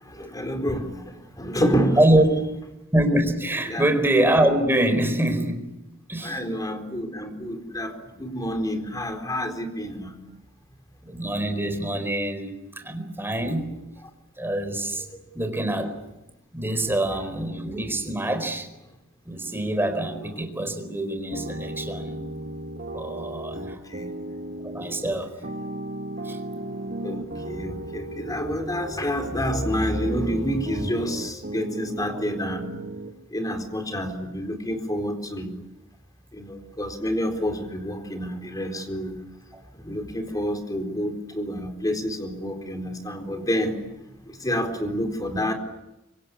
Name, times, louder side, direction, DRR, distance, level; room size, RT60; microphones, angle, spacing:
voice 1, 0.0-2.0 3.7-3.8 6.2-10.2 23.5-24.1 27.0-32.7 33.3-35.6 36.3-39.2 39.7-43.8 44.2-45.5, equal, 20° left, 5 dB, 4.2 m, -28 dB
voice 2, 2.9-5.6 6.1-6.4 11.0-13.7 14.4-15.0 15.3-15.9 16.5-18.7 19.2-22.2 22.9-23.8 24.7-25.3 26.2-26.4 39.8-40.0, right 1 dB, 10° right, 6 dB, 4.5 m, -24 dB
sound 1, 21.3-33.1, right 1 dB, 50° right, 2.1 m, -35 dB
26.0 x 25.0 x 8.6 m, 0.95 s
head